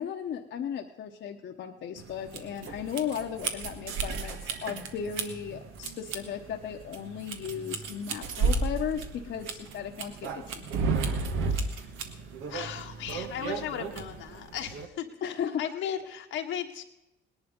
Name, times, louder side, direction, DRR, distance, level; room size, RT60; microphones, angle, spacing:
voice 1, 0.0-10.7 15.2-16.0, left 8 dB, 70° left, 3 dB, 1.1 m, -36 dB
sound 1, 2.0-14.9, right 4 dB, 90° right, 1.4 m, -33 dB
voice 2, 11.5-11.8 12.5-15.1 15.6-16.8, left 9 dB, 85° left, 3 dB, 1.5 m, -36 dB
18.5 x 10.5 x 5.3 m, 0.91 s
cardioid pair, 90°, 20 cm